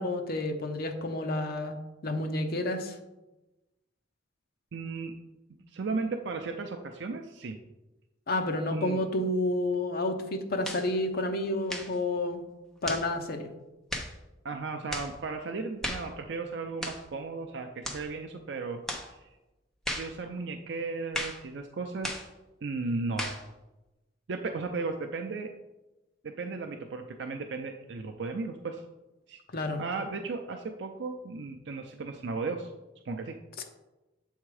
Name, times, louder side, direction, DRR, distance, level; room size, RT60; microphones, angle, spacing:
voice 1, 0.0-3.0 8.3-12.4 12.8-13.5 29.5-29.8 33.6-33.7, left 1 dB, 55° left, 4 dB, 0.8 m, -30 dB
voice 2, 4.7-5.1 5.7-7.6 8.7-9.0 14.4-18.8 19.2-19.3 19.9-22.2 22.6-23.4 24.3-25.5 26.2-28.8 29.3-29.4 29.8-32.7 33.0-33.3, right 3 dB, 65° right, 4 dB, 0.5 m, -35 dB
sound 1, 10.6-10.9 11.7-12.0 12.8-13.1 13.9-14.1 14.9-15.1 15.8-16.1 16.8-17.1 17.8-18.1 18.9-19.1 19.8-20.1 21.1-21.4 22.0-22.3 23.2-23.4, equal, 5° left, 0.8 m, -35 dB
7.5 x 3.6 x 4.8 m, 1.0 s
head